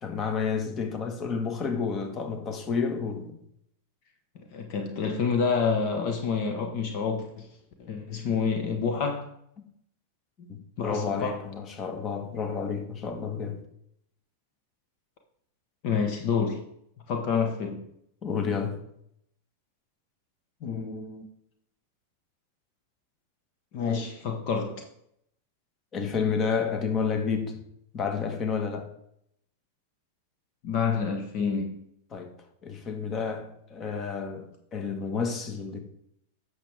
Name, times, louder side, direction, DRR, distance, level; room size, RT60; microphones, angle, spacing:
voice 1, 0.0-3.3 10.4-13.6 18.2-18.8 25.9-27.6 27.9-28.9 32.1-32.3 32.6-35.8, left 5 dB, 30° left, 1.6 m, -30 dB
voice 2, 4.3-7.5 7.8-9.3 10.8-11.4 15.8-16.6 17.1-17.9 20.6-21.2 23.7-24.9 30.6-31.8, left 5 dB, 55° left, 1.3 m, -28 dB
10.0 x 6.8 x 3.6 m
hypercardioid pair, 110°, 0 cm